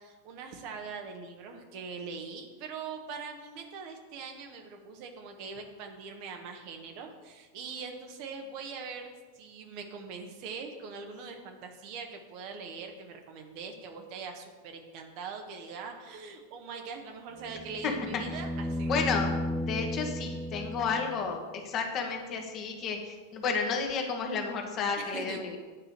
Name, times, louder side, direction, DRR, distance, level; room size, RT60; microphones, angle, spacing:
voice 1, 0.0-9.1 9.3-18.9 25.0-25.4, right 5 dB, 45° right, 4 dB, 1.4 m, -42 dB
sound 1, 17.4-21.5 23.9-24.0, left 1 dB, ahead, 0.7 m, -34 dB
voice 2, 17.8-18.2 18.9-19.3 19.7-21.4 21.6-25.6, left 5 dB, 35° left, 3 dB, 1.6 m, -31 dB
9.9 x 5.6 x 7.4 m, 1.4 s
figure-of-eight pair, 90°, 0 cm